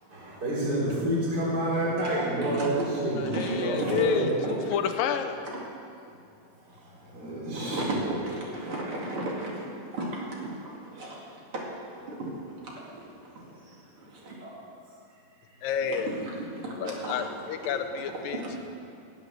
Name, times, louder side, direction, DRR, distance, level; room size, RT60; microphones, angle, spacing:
voice 1, 0.1-4.2 6.7-7.9 11.0-11.1 14.4-14.5, right 1 dB, 25° right, -7 dB, 4.2 m, -29 dB
voice 2, 1.8-2.9 3.2-4.0 4.4-4.8 5.5-5.6 7.4-14.4 15.9-17.4 17.6-17.7 18.3-18.7, right 1 dB, 40° right, -3 dB, 2.8 m, -35 dB
voice 3, 3.2-5.4 15.6-16.1 16.8-18.4, left 7 dB, 80° left, 7 dB, 2.3 m, -30 dB
18.5 x 8.3 x 6.5 m, 2.5 s
omnidirectional pair, 4.3 m